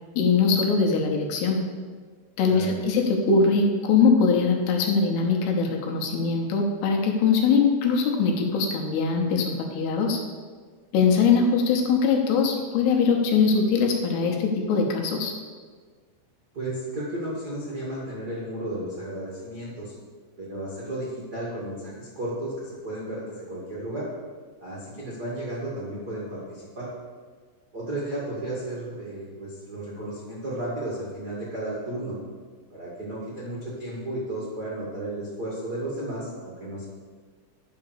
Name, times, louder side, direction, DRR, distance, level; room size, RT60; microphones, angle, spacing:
voice 1, 0.2-1.6 2.4-10.2 10.9-15.3, left 5 dB, 75° left, 1 dB, 2.9 m, -22 dB
voice 2, 2.5-2.8 16.5-19.9 20.4-24.1 24.6-26.9 27.7-32.1 32.7-36.9, right 1 dB, 85° right, -7 dB, 0.8 m, -33 dB
10.5 x 5.1 x 6.7 m, 1.6 s
omnidirectional pair, 5.3 m